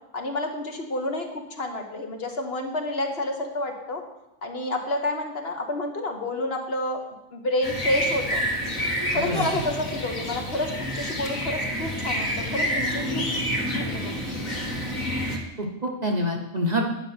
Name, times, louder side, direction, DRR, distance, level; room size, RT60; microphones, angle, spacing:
voice 1, 0.1-4.0 4.4-7.0 7.3-8.4 9.1-13.0 13.7-14.1, left 1 dB, 50° left, 3 dB, 1.3 m, -29 dB
sound 1, 7.6-15.4, equal, 70° left, 2.1 m, -28 dB
voice 2, 9.2-9.6 15.6-16.9, equal, 30° right, 1 dB, 1.1 m, -26 dB
10.5 x 5.3 x 7.7 m, 0.93 s
omnidirectional pair, 1.4 m